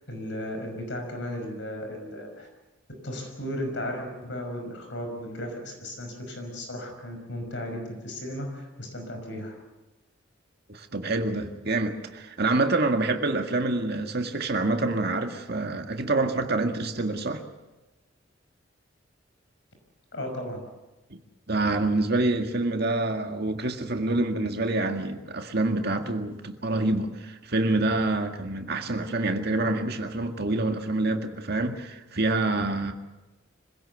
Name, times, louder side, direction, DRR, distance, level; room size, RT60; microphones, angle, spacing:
voice 1, 0.0-2.5 3.0-9.6 20.1-20.6, left 1 dB, 65° left, 5.6 m, -35 dB
voice 2, 10.7-17.4 21.1-21.2 21.5-32.9, right 2 dB, 55° right, 2.0 m, -27 dB
25.5 x 16.5 x 8.1 m
head